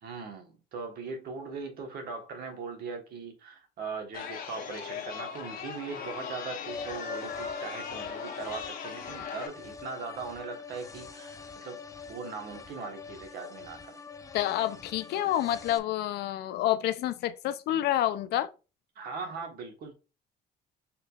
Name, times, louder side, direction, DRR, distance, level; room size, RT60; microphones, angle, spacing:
voice 1, 0.0-11.8 12.1-14.0 18.9-19.9, right 4 dB, 65° right, 1.3 m, -40 dB
Chatter, 4.1-9.5, left 7 dB, 60° left, 0.9 m, -39 dB
sound 1, 6.6-15.8, left 5 dB, 20° left, 0.4 m, -44 dB
voice 2, 14.3-18.5, left 12 dB, 75° left, 0.5 m, -28 dB
4.6 x 3.7 x 2.4 m
cardioid pair, 110°, 17 cm